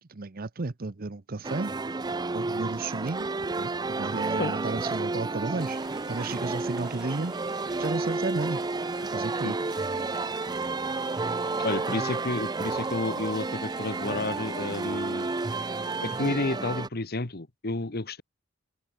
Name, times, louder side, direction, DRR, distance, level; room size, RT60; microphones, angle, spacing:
voice 1, 0.1-1.7 2.3-3.3 3.6-5.8 6.1-7.3 7.8-8.6 9.1-9.6, right 3 dB, 45° right, 0.8 m, -33 dB
sound 1, 1.4-16.9, right 3 dB, 20° right, 0.5 m, -31 dB
sound 2, 5.6-16.3, right 1 dB, 5° right, 4.7 m, -51 dB
voice 2, 11.6-15.3 16.0-18.2, left 2 dB, 50° left, 1.5 m, -31 dB
head